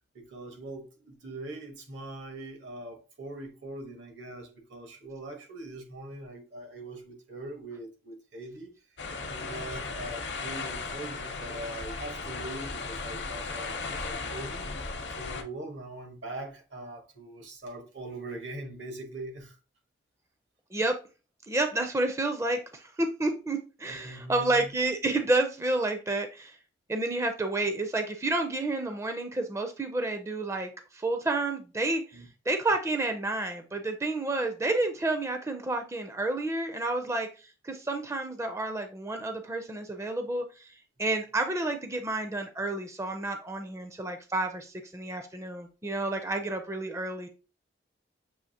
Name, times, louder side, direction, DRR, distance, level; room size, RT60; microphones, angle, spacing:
voice 1, 0.1-8.7 9.2-19.6 23.9-24.7 32.1-32.3, right 2 dB, 75° right, 1.2 m, -42 dB
sound 1, 9.0-15.4, left 4 dB, 65° left, 0.7 m, -36 dB
voice 2, 21.5-26.6 26.9-47.3, right 2 dB, 15° right, 0.4 m, -30 dB
6.9 x 2.8 x 2.8 m
head